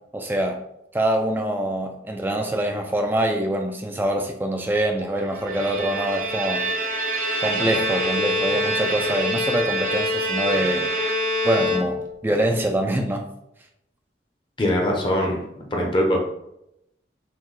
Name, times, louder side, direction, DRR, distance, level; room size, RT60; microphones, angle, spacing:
voice 1, 0.1-0.6 0.9-6.7 7.4-10.9 11.4-13.3, right 1 dB, 10° right, 3 dB, 0.3 m, -24 dB
Bowed string instrument, 5.3-12.3, equal, 50° right, 0.6 m, -25 dB
voice 2, 14.6-15.4 15.7-16.2, left 1 dB, 30° left, 1 dB, 0.6 m, -21 dB
5.6 x 2.1 x 3.1 m, 0.82 s
head